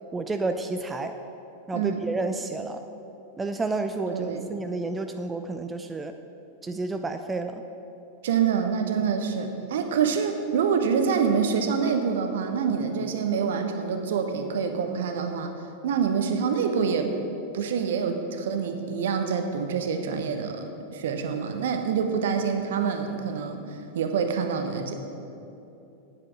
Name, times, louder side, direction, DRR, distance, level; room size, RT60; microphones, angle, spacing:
voice 1, 0.1-1.1 1.7-2.8 3.4-6.1 6.6-7.6, right 3 dB, 15° right, 7 dB, 0.4 m, -30 dB
voice 2, 4.1-4.4 8.2-15.5 15.8-17.1 17.5-23.6 23.9-24.9, right 6 dB, 60° right, 6 dB, 0.9 m, -26 dB
9.0 x 8.2 x 6.0 m, 2.9 s
figure-of-eight pair, 90°, 0 cm